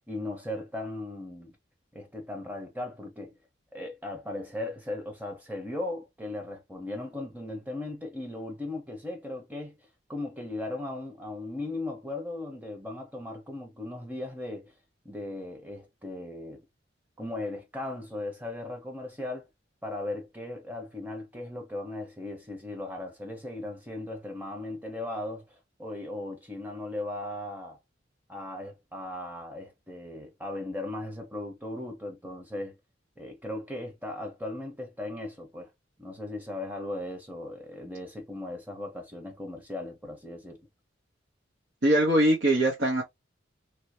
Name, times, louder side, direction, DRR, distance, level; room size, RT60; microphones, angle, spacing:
voice 1, 0.1-1.6 1.9-3.3 3.7-9.8 10.1-14.7 15.0-16.6 17.2-19.5 19.8-27.8 28.3-32.8 33.2-35.7 36.0-40.6, left 2 dB, 10° right, 1.1 m, -37 dB
voice 2, 41.8-43.0, right 1 dB, 65° right, 1.2 m, -22 dB
3.0 x 2.9 x 3.0 m
head